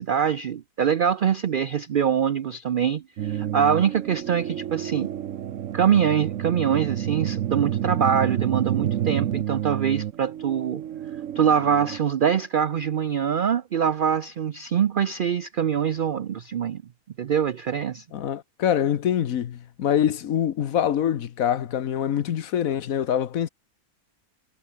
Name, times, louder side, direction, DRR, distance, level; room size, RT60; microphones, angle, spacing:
voice 1, 0.0-5.1 5.7-10.8 11.4-16.8 17.2-18.0, right 8 dB, 85° right, 0.4 m, -24 dB
sound 1, 3.2-12.0, right 10 dB, 60° right, 1.1 m, -29 dB
voice 2, 18.1-23.5, left 9 dB, 65° left, 1.3 m, -24 dB
omnidirectional pair, 1.6 m